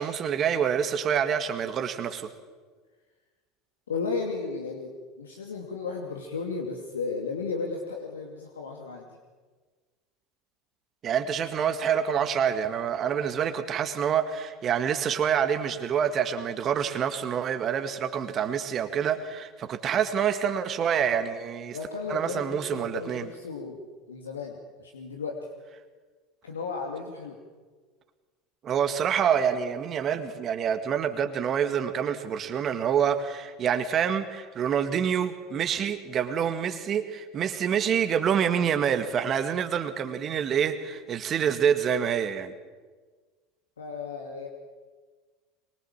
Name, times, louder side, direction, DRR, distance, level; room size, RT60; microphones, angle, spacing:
voice 1, 0.0-2.3 11.0-21.8 22.1-23.3 28.6-42.5, right 8 dB, 40° right, 8 dB, 1.9 m, -27 dB
voice 2, 3.9-9.1 21.7-25.4 26.4-27.4 43.8-44.5, left 4 dB, 80° left, 2 dB, 2.5 m, -34 dB
23.5 x 23.0 x 7.4 m, 1.4 s
figure-of-eight pair, 75°, 0 cm